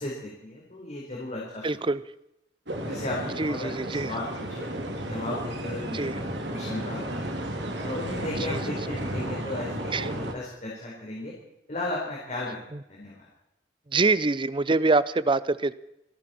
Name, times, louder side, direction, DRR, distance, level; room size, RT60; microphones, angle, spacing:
voice 1, 0.0-1.7 2.8-4.7 5.0-7.3 7.8-11.3 11.7-12.6 12.9-13.3, left 2 dB, 40° left, -4 dB, 4.3 m, -35 dB
voice 2, 1.6-2.0 3.4-4.1 5.9-6.1 8.5-8.6 9.9-10.1 13.9-15.7, right 3 dB, 30° right, 17 dB, 0.6 m, -24 dB
sound 1, 2.7-10.3, right 1 dB, 80° right, 2.6 m, -33 dB
28.5 x 10.5 x 4.4 m, 0.85 s
head